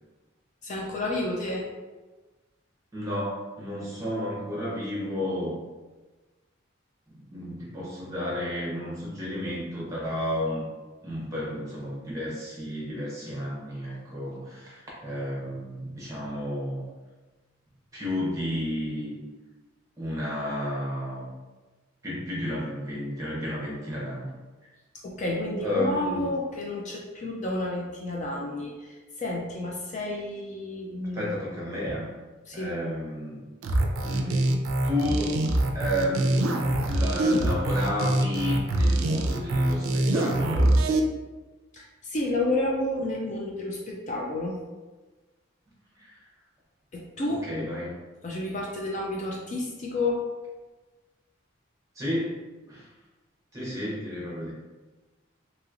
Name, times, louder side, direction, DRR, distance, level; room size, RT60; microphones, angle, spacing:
voice 1, 0.6-1.7 25.0-31.3 32.5-32.8 41.7-44.6 46.9-47.5 48.2-50.3, left 2 dB, 35° left, -2 dB, 0.4 m, -30 dB
voice 2, 2.9-5.6 7.1-10.7 11.0-16.8 17.9-19.1 20.0-21.2 22.0-24.3 25.6-26.3 31.1-32.1 32.5-33.4 34.0-35.4 35.7-40.8 46.0-46.1 47.5-48.0 52.0-52.4 52.7-52.9 53.5-54.5, left 1 dB, 15° right, -6 dB, 0.8 m, -32 dB
sound 1, 33.6-41.0, right 1 dB, 85° right, 0.4 m, -24 dB
2.9 x 2.9 x 2.5 m, 1.2 s
head